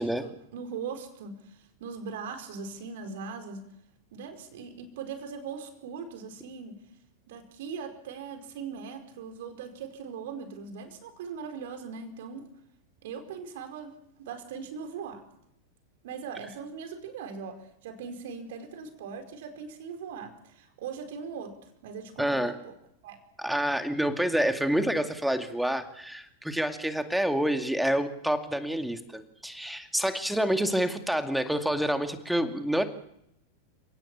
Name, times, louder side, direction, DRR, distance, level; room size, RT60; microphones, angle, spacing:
voice 1, 0.0-3.7 4.1-6.8 7.3-12.5 13.0-15.2 16.0-21.5 21.8-22.7 23.0-23.2, right 6 dB, 55° right, 6 dB, 4.6 m, -40 dB
voice 2, 22.2-22.5 23.4-32.9, right 1 dB, ahead, 7 dB, 2.3 m, -28 dB
29.5 x 18.0 x 7.3 m, 0.78 s
figure-of-eight pair, 90°, 0 cm